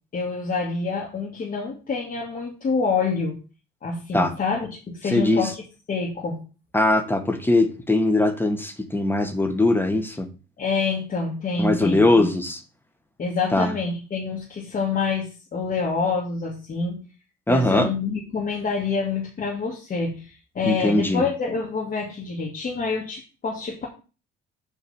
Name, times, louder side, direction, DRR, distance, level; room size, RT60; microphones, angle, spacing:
voice 1, 0.1-3.4 3.8-6.4 10.6-12.3 13.2-17.0 17.5-23.9, left 4 dB, 45° left, -3 dB, 2.6 m, -27 dB
voice 2, 5.1-5.5 6.7-10.3 11.6-12.6 13.5-13.7 17.5-17.9 20.6-21.2, left 2 dB, 10° left, 7 dB, 1.7 m, -21 dB
8.2 x 4.6 x 7.3 m, 0.34 s
cardioid pair, 105°, 20 cm